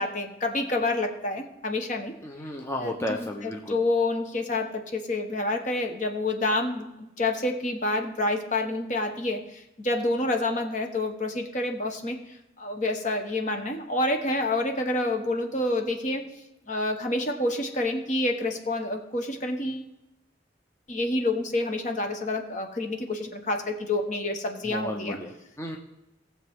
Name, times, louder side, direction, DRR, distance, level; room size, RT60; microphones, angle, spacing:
voice 1, 0.0-2.1 2.8-12.2 12.6-16.2 16.7-19.9 20.9-25.2, left 2 dB, 40° left, 4 dB, 1.3 m, -28 dB
voice 2, 2.2-3.8 24.6-25.8, left 1 dB, 15° left, 0 dB, 0.9 m, -33 dB
18.5 x 7.1 x 3.7 m, 0.91 s
head